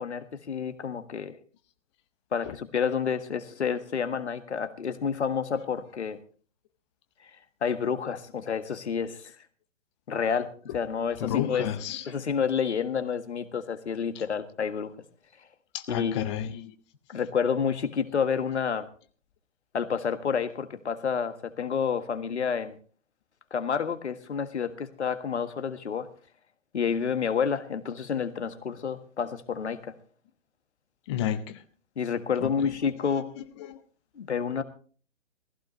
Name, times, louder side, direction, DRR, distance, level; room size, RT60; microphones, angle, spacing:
voice 1, 0.0-1.4 2.3-6.2 7.6-9.2 10.1-11.7 12.1-14.9 15.9-16.3 17.1-18.9 19.7-22.8 23.5-26.1 26.7-29.9 32.0-33.3 34.2-34.6, left 6 dB, 60° left, 1.6 m, -29 dB
voice 2, 11.2-12.0 15.7-16.7 31.1-31.6 32.4-32.5 33.7-33.8, left 11 dB, 25° left, 0.7 m, -30 dB
17.0 x 15.5 x 3.1 m
figure-of-eight pair, 125°, 37 cm